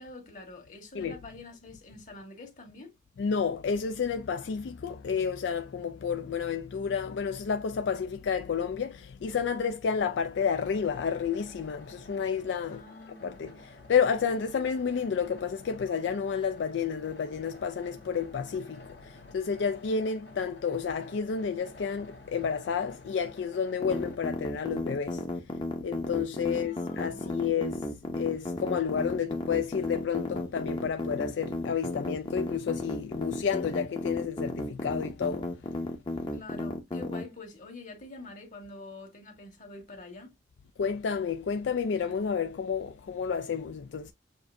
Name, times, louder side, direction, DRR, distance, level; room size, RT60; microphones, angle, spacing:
voice 1, 0.0-2.9 12.7-13.4 26.5-27.8 36.3-40.3, left 2 dB, 45° left, 1.7 m, -46 dB
voice 2, 3.2-12.8 13.1-25.2 25.8-27.9 28.1-35.5 40.8-44.1, left 6 dB, 75° left, 0.4 m, -30 dB
sound 1, 10.3-24.2, left 1 dB, 60° left, 1.4 m, -52 dB
sound 2, 23.8-37.2, left 1 dB, 25° left, 0.7 m, -33 dB
6.9 x 2.6 x 2.5 m
head